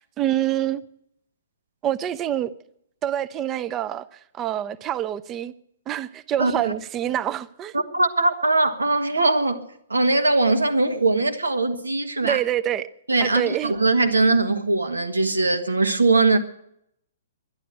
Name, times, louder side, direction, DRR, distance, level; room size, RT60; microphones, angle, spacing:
voice 1, 0.2-0.8 1.8-2.5 3.0-4.1 4.4-5.5 5.9-7.7 12.2-12.9 13.2-13.7, right 11 dB, 20° right, 0.6 m, -26 dB
voice 2, 6.4-6.7 7.7-9.6 9.9-12.4 13.1-16.4, right 2 dB, 80° right, 1.5 m, -21 dB
11.5 x 11.0 x 9.8 m
figure-of-eight pair, 120°, 0 cm